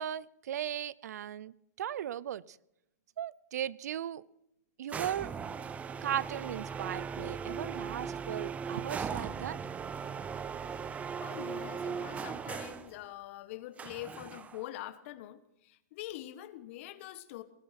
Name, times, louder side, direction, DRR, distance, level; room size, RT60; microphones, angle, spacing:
voice 1, 0.0-2.4 3.2-4.2 4.8-5.3 6.0-9.6, right 10 dB, 65° right, 24 dB, 0.5 m, -37 dB
sound 1, 4.9-12.9 13.8-14.7, right 6 dB, 15° right, 0.7 m, -38 dB
voice 2, 11.2-17.4, left 14 dB, 50° left, 14 dB, 1.3 m, -44 dB
18.0 x 13.5 x 5.8 m, 0.86 s
hypercardioid pair, 130°, 9 cm